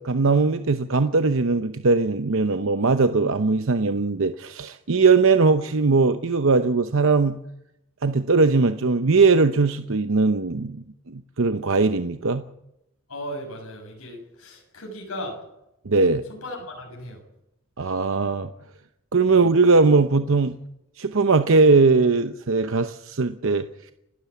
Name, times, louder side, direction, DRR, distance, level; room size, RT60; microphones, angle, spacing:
voice 1, 0.0-7.4 8.0-12.4 15.9-16.2 17.8-18.5 19.1-20.5 21.0-23.9, right 4 dB, 65° right, 9 dB, 0.8 m, -20 dB
voice 2, 13.1-15.4 16.3-17.2 19.3-19.4, equal, 90° left, 1 dB, 6.8 m, -36 dB
30.0 x 12.5 x 8.4 m, 0.87 s
head